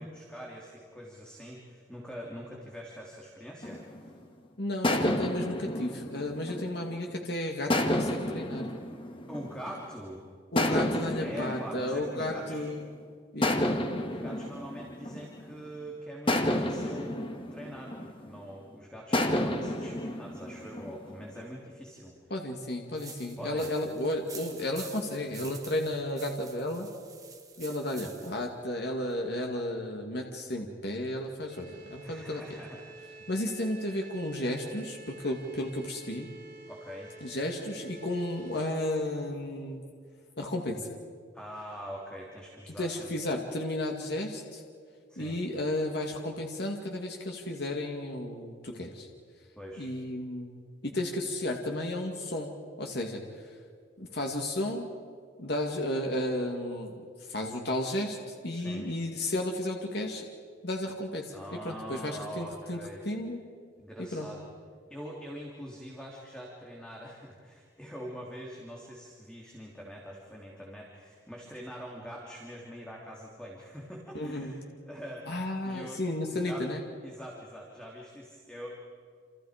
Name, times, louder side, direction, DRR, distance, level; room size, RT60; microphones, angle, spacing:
voice 1, 0.0-4.1 9.3-10.2 11.2-12.7 14.0-17.2 17.5-22.2 23.4-23.7 32.0-33.0 36.7-37.1 41.3-43.1 45.1-45.4 49.6-49.9 58.5-58.9 61.3-63.0 63.8-64.4 64.9-75.3 75.6-76.0 76.3-76.7 77.0-78.8, equal, 5° left, -3 dB, 3.0 m, -43 dB
sound 1, 3.6-4.2 4.8-7.1 7.7-9.9 10.6-12.8 13.4-15.7 16.3-18.5 19.1-21.4, left 1 dB, 30° left, 1.7 m, -31 dB
voice 2, 4.6-8.7 10.5-12.8 13.3-13.6 22.3-26.9 27.6-32.4 33.3-36.3 37.2-39.8 40.4-40.9 42.8-44.6 45.2-49.1 49.8-50.5 50.8-52.5 52.8-53.5 54.0-54.8 55.4-56.9 57.2-60.2 60.6-61.3 61.6-62.8 63.0-63.4 64.1-64.3 74.1-74.5 75.3-76.8, left 1 dB, 60° left, 2 dB, 2.2 m, -33 dB
sound 2, 23.0-28.5, right 5 dB, 20° right, 1.9 m, -48 dB
sound 3, 31.5-38.8, right 3 dB, 40° right, 6.4 m, -49 dB
29.0 x 28.0 x 5.1 m, 2.1 s
head